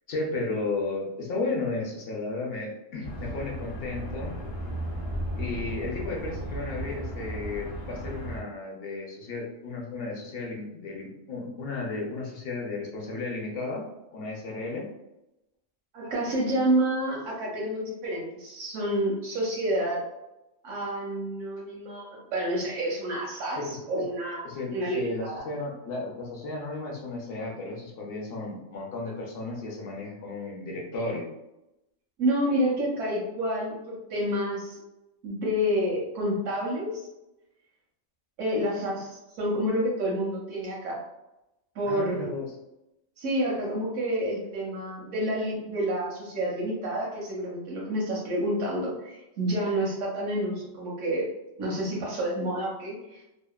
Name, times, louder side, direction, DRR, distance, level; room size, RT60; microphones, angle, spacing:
voice 1, 0.1-4.4 5.3-13.9 14.1-14.9 23.6-24.0 24.4-31.3 41.8-42.5, left 3 dB, 60° left, -1 dB, 0.7 m, -34 dB
sound 1, 3.0-8.4, right 1 dB, 35° left, 0.3 m, -35 dB
voice 2, 15.9-20.0 20.6-25.5 32.2-34.8 35.2-36.9 38.4-41.0 41.7-42.3 43.2-51.3 51.6-53.3, equal, 85° right, -4 dB, 1.0 m, -29 dB
2.7 x 2.0 x 2.2 m, 0.92 s
omnidirectional pair, 1.3 m